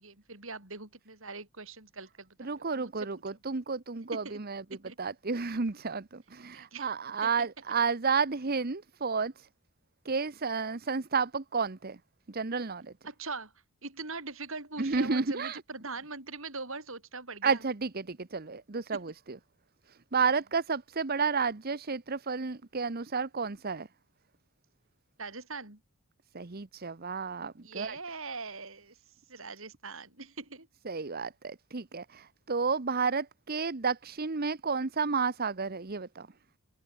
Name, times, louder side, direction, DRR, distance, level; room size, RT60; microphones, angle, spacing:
voice 1, 0.0-3.1 4.1-4.4 4.7-5.0 6.5-6.9 7.2-7.5 13.0-13.5 13.8-17.6 18.9-19.0 25.2-25.8 27.6-28.9 29.3-30.7, right 3 dB, 60° right, 6.9 m, -42 dB
voice 2, 2.4-4.6 5.0-9.5 10.0-12.0 12.3-12.9 14.8-15.6 17.4-19.4 19.9-23.9 26.3-28.0 30.8-36.3, right 5 dB, 45° right, 0.9 m, -31 dB
head